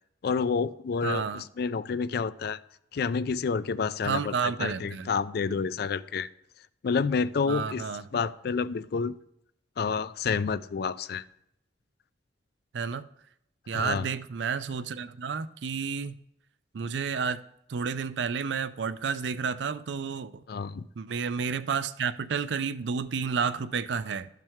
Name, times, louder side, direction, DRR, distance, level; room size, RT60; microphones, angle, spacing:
voice 1, 0.2-2.6 2.9-6.3 6.8-7.8 8.1-9.1 9.8-11.2 13.7-14.1 20.5-20.8, left 5 dB, 60° left, 0.4 m, -29 dB
voice 2, 1.0-1.4 4.0-5.1 7.5-8.3 12.7-13.1 13.7-16.2 16.7-17.4 17.7-20.4 21.0-24.3, right 6 dB, 80° right, 0.5 m, -31 dB
12.5 x 5.8 x 3.6 m
head